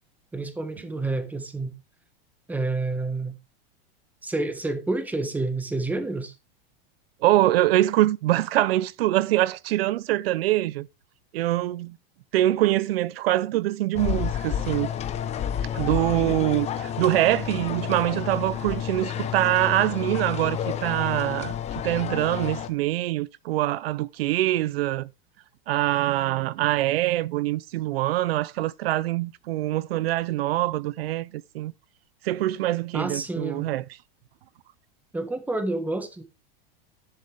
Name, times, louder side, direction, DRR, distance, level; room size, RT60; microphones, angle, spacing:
voice 1, 0.3-1.7 2.5-3.3 4.2-6.3 32.9-33.7 35.1-36.2, right 2 dB, 5° right, 1.5 m, -29 dB
voice 2, 7.2-10.9 11.3-12.0 12.3-14.9 15.7-21.6 21.8-25.1 25.7-31.7 32.2-33.8, right 15 dB, 75° right, 0.7 m, -24 dB
sound 1, 14.0-22.7, left 9 dB, 20° left, 1.0 m, -30 dB
10.5 x 10.0 x 3.5 m
supercardioid pair, 155°, 30 cm